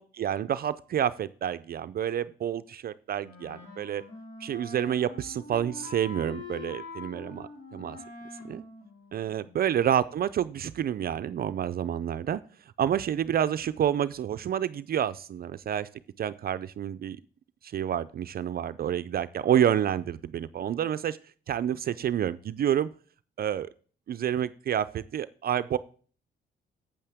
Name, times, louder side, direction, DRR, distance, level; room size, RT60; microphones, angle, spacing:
voice 1, 0.0-4.0 4.4-8.0 8.5-8.6 9.1-12.4 12.8-15.9 16.2-17.2 17.6-21.2 21.5-22.9 23.4-23.7 24.1-25.8, right 10 dB, 50° right, 13 dB, 0.4 m, -29 dB
Wind instrument woodwind instrument, 3.2-9.8, left 3 dB, 85° left, 4.2 m, -44 dB
8.6 x 8.6 x 3.5 m, 0.42 s
cardioid pair, 90°, 20 cm